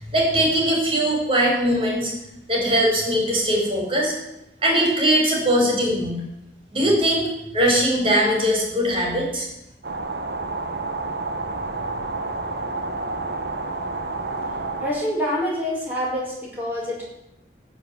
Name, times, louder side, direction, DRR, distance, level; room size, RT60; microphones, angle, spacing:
voice 1, 0.1-2.1 2.5-4.1 4.6-6.2 6.7-7.2 7.5-9.5, equal, 30° right, -1 dB, 4.3 m, -20 dB
sound 1, 9.8-14.9, right 3 dB, 70° right, 1.3 m, -29 dB
voice 2, 14.8-17.0, equal, 10° right, -6 dB, 5.2 m, -26 dB
15.0 x 5.1 x 9.4 m, 0.87 s
head